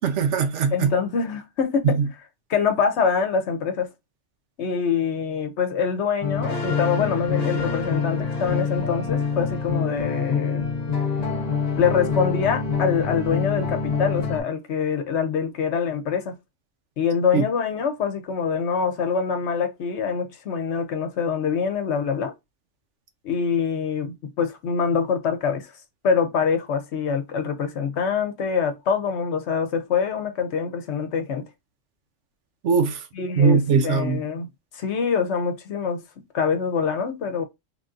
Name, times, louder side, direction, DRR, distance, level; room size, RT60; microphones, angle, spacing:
voice 1, 0.0-0.9 1.8-2.0 17.3-17.4 32.6-33.0 33.4-34.2, right 5 dB, 70° right, 1.0 m, -20 dB
voice 2, 0.7-2.0 2.5-3.9 4.6-10.6 11.8-16.3 17.0-22.3 23.2-25.7 26.0-31.4 33.2-36.0 36.3-37.4, left 6 dB, 65° left, 0.9 m, -25 dB
sound 1, 6.2-14.4, left 5 dB, 35° left, 0.9 m, -26 dB
3.4 x 2.6 x 3.7 m
omnidirectional pair, 1.3 m